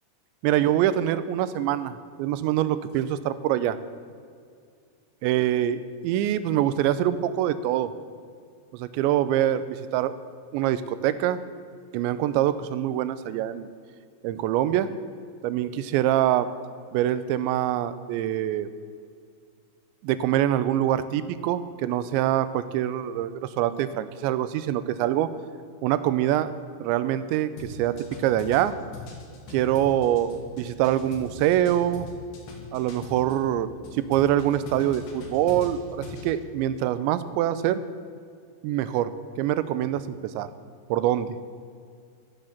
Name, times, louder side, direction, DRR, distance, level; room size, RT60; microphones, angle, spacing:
voice 1, 0.4-3.8 5.2-7.9 8.7-10.2 10.5-11.4 11.9-13.7 14.2-14.9 15.4-16.5 16.9-18.7 20.0-25.3 25.8-26.5 26.8-28.8 29.5-30.3 30.6-32.1 32.7-33.7 33.9-37.8 38.6-39.1 39.4-40.5 40.9-41.4, right 12 dB, 90° right, 14 dB, 3.0 m, -24 dB
sound 1, 27.6-33.5 33.8-36.3, left 4 dB, 70° left, 4.3 m, -41 dB
14.0 x 12.0 x 7.4 m, 2.2 s
omnidirectional pair, 5.2 m